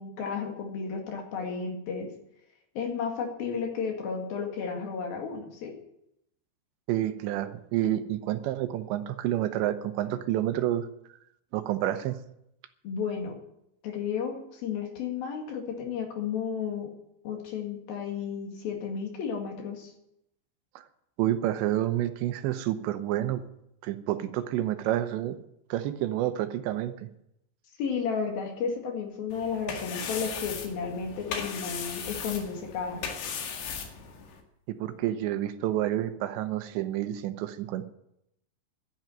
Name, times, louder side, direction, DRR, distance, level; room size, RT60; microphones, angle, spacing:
voice 1, 0.0-2.1 2.8-5.8 12.8-13.4 13.8-16.9 17.2-19.9 27.8-33.1, left 6 dB, 60° left, 3 dB, 3.6 m, -33 dB
voice 2, 6.9-10.9 11.5-12.2 20.8-20.9 21.2-23.4 23.8-25.4 25.7-26.9 34.7-37.8, right 13 dB, 80° right, 10 dB, 3.1 m, -29 dB
sound 1, 29.3-34.4, left 6 dB, 85° left, 4.3 m, -37 dB
12.0 x 10.5 x 9.1 m, 0.79 s
omnidirectional pair, 5.1 m